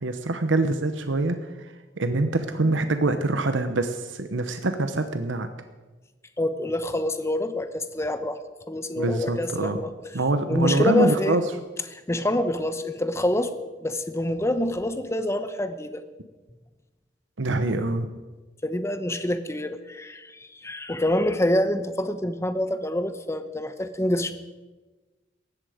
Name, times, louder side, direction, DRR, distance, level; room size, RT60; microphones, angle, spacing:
voice 1, 0.0-1.4 2.0-5.5 9.0-9.8 10.1-11.4 17.4-18.1, right 2 dB, 75° right, 8 dB, 1.0 m, -24 dB
voice 2, 6.4-8.4 8.7-9.9 10.5-11.4 11.9-16.0 18.6-24.3, left 1 dB, 15° left, 10 dB, 0.9 m, -26 dB
18.5 x 14.5 x 5.1 m, 1.2 s
head